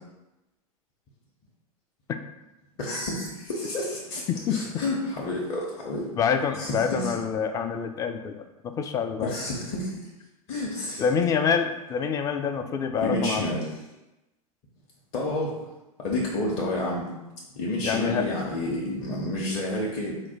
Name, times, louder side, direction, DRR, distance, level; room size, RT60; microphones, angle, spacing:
voice 1, 2.8-4.2 4.5-6.1 6.5-7.1 9.2-10.1 10.5-11.0 13.0-13.6 15.1-15.7 16.0-17.1 17.5-20.2, left 1 dB, 40° left, -3 dB, 0.8 m, -29 dB
voice 2, 4.3-4.6 6.2-9.3 11.0-13.5 17.8-18.3, left 6 dB, 20° left, 8 dB, 0.3 m, -26 dB
4.9 x 2.1 x 4.4 m, 0.99 s
figure-of-eight pair, 85°, 18 cm